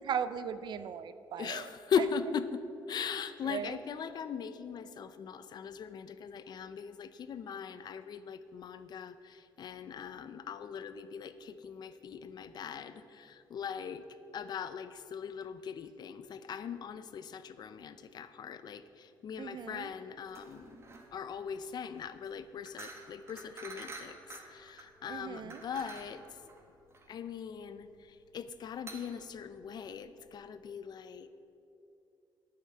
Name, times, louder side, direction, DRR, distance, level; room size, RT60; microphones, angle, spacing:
voice 1, 0.0-1.7 3.5-3.8 19.4-19.9 25.1-25.6, right 8 dB, 60° right, 13 dB, 0.6 m, -37 dB
voice 2, 1.4-14.1 14.3-20.8 21.1-24.2 24.5-26.2 27.1-31.3, left 7 dB, 55° left, 12 dB, 0.6 m, -40 dB
sound 1, 20.3-30.2, right 3 dB, 30° right, 1.6 m, -50 dB
8.8 x 8.7 x 7.8 m, 2.8 s
cardioid pair, 100°, 9 cm